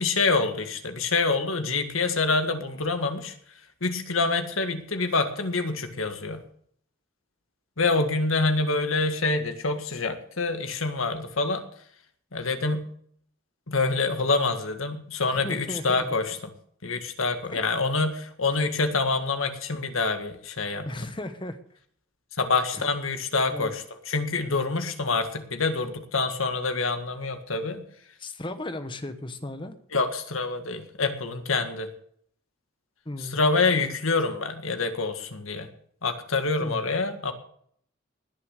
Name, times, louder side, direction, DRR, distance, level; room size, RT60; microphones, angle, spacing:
voice 1, 0.0-3.4 3.8-6.4 7.8-11.6 12.3-12.9 13.7-16.4 16.8-20.9 22.4-27.8 29.9-31.9 33.2-35.7 36.0-37.3, left 3 dB, 85° left, 7 dB, 1.8 m, -26 dB
voice 2, 15.3-16.0 17.5-17.6 18.5-18.6 20.9-21.6 22.8-22.9 23.5-23.7 28.2-29.7 33.0-33.4 36.6-36.8, left 1 dB, 25° left, 9 dB, 1.2 m, -35 dB
20.0 x 6.9 x 6.6 m, 0.63 s
head